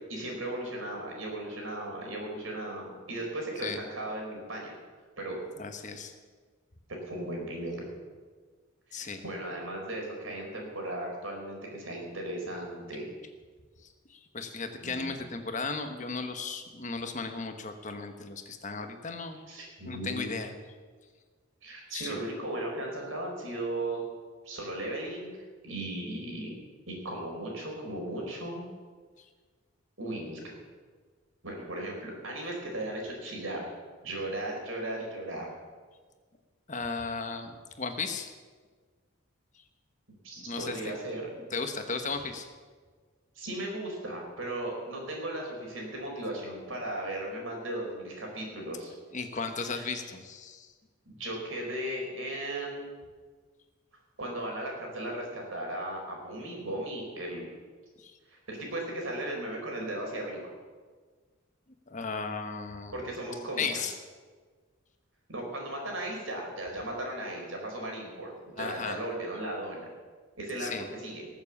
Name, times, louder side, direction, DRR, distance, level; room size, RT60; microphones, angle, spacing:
voice 1, 0.1-4.7 5.2-5.4 7.0-7.8 8.9-13.1 14.8-15.1 19.5-20.3 21.6-24.0 24.4-25.4 25.6-26.5 26.9-28.7 30.0-30.5 31.4-33.7 34.0-35.5 40.2-41.3 43.3-48.9 49.7-49.9 51.1-52.9 54.2-57.5 58.3-60.5 62.9-63.8 65.3-69.9 70.4-70.7 71.0-71.2, right 1 dB, 80° right, 0 dB, 4.5 m, -36 dB
voice 2, 5.6-6.1 8.9-9.2 14.1-19.4 19.8-20.6 21.9-22.2 36.7-38.3 40.4-41.0 41.3-42.5 49.1-50.7 58.0-58.2 61.9-63.0 63.6-63.9 68.6-69.0 70.6-70.9, left 4 dB, 35° left, 7 dB, 1.1 m, -35 dB
19.5 x 7.2 x 7.1 m, 1.5 s
head